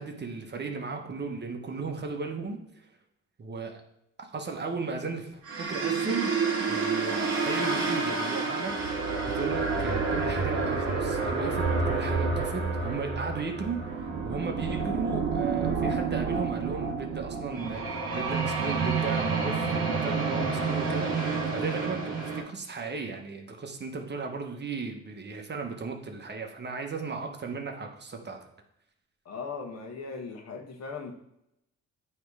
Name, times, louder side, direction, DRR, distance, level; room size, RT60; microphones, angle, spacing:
voice 1, 0.0-2.9 3.4-3.8 4.2-6.3 6.7-28.4, right 4 dB, 35° right, 3 dB, 1.0 m, -35 dB
sound 1, 5.4-22.4, right 4 dB, 55° right, 2.0 m, -29 dB
voice 2, 29.2-31.1, left 4 dB, 60° left, 3 dB, 1.3 m, -38 dB
8.5 x 3.3 x 4.8 m, 0.80 s
cardioid pair, 90°, 30 cm